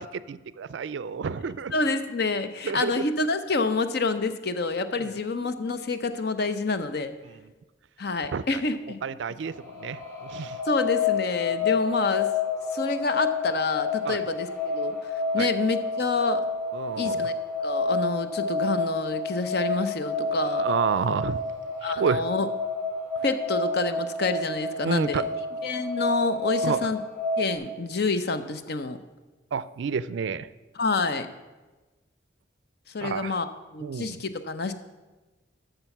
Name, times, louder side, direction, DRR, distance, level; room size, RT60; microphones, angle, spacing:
voice 1, 0.0-1.7 2.6-3.0 8.3-8.6 9.0-10.6 14.1-14.2 15.4-15.5 16.7-17.2 20.3-21.4 21.8-22.2 24.8-25.2 26.6-26.8 29.5-30.5 33.0-33.3 33.8-34.2, right 5 dB, 65° right, 17 dB, 0.4 m, -29 dB
voice 2, 1.7-7.1 8.0-9.0 10.7-12.3 12.7-15.0 15.3-16.4 17.0-17.3 17.6-20.7 21.8-22.5 23.2-25.3 25.6-27.0 27.4-29.0 30.7-31.3 32.9-34.7, left 3 dB, 55° left, 10 dB, 0.7 m, -28 dB
sound 1, 9.4-27.5, left 3 dB, 15° left, 2.9 m, -29 dB
12.5 x 6.8 x 5.9 m, 1.2 s
head